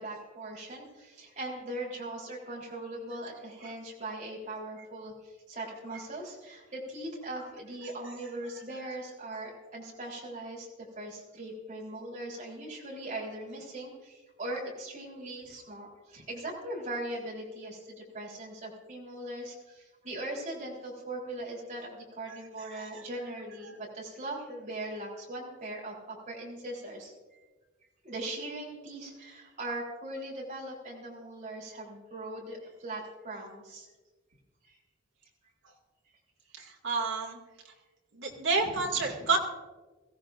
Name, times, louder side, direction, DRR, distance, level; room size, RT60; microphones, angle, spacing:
voice 1, 0.0-10.7 11.0-27.4 28.0-33.9 34.6-34.8 38.9-39.2, right 1 dB, 40° right, -3 dB, 3.8 m, -40 dB
voice 2, 36.8-37.4 38.1-39.4, right 4 dB, 70° right, -1 dB, 2.5 m, -28 dB
22.0 x 15.5 x 2.6 m, 1.3 s
head